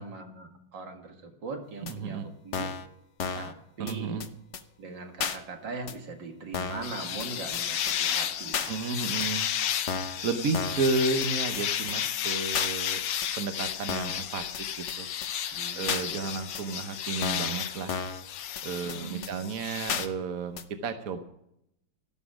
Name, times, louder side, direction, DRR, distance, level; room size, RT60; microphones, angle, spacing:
voice 1, 0.0-2.7 3.3-4.2 4.8-8.7 15.5-16.3 18.8-19.3, right 4 dB, 70° right, 4 dB, 2.5 m, -40 dB
voice 2, 1.8-2.3 3.8-4.3 8.7-9.5 10.2-13.0 13.4-14.5 14.8-15.1 15.7-17.9 18.6-21.2, right 4 dB, 55° right, 8 dB, 1.3 m, -32 dB
sound 1, 1.9-2.0 2.5-2.9 3.2-3.5 3.9-4.0 4.2-4.3 4.5-4.6 5.2-5.4 5.9-6.0 6.5-6.9 7.2-7.3 7.5-7.6 7.9-8.0 8.5-8.7 9.2-9.3 9.9-10.2 10.5-10.9 11.2-11.3 11.5-11.6 11.9-12.0 12.5-12.7 13.2-13.3 13.9-14.2 14.5-14.6 14.9-15.0 15.2-15.3 15.9-16.0 16.5-16.6 17.2-17.5 17.9-18.2 18.6-18.7 18.9-19.0 19.2-19.3 19.9-20.1 20.6-20.7, left 6 dB, 50° left, 0.9 m, -32 dB
sound 2, 6.8-20.1, left 10 dB, 90° left, 1.6 m, -33 dB
13.0 x 12.5 x 5.0 m, 0.77 s
omnidirectional pair, 2.0 m